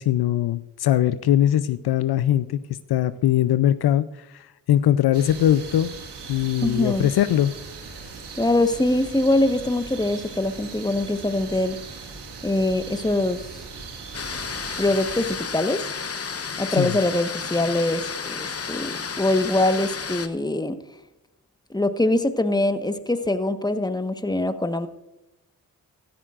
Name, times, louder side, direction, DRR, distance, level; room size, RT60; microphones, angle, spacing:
voice 1, 0.0-2.6 2.9-5.9 6.3-7.5 16.7-17.0, left 11 dB, 70° left, 14 dB, 0.6 m, -21 dB
sound 1, 5.1-15.4, right 4 dB, 80° right, 2.1 m, -39 dB
voice 2, 6.6-7.1 8.3-11.8 12.4-13.6 14.8-15.8 16.6-20.8 21.7-24.9, left 2 dB, 10° left, 9 dB, 1.3 m, -23 dB
sound 2, 14.1-20.3, left 5 dB, 35° left, 1.0 m, -32 dB
16.5 x 13.0 x 2.5 m, 0.90 s
supercardioid pair, 40°, 40 cm